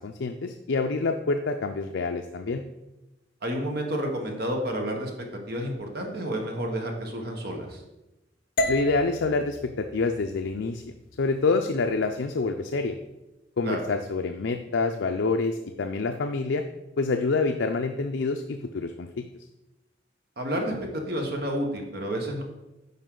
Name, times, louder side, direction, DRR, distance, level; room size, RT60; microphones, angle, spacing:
voice 1, 0.0-2.6 8.7-13.0 13.6-16.6 17.0-19.2, left 3 dB, 70° left, 6 dB, 0.5 m, -27 dB
voice 2, 3.4-7.8 13.6-13.8 20.4-22.4, equal, 60° right, 2 dB, 1.4 m, -30 dB
sound 1, 8.6-12.7, left 1 dB, 50° left, 0.8 m, -35 dB
9.5 x 5.5 x 3.8 m, 0.99 s
head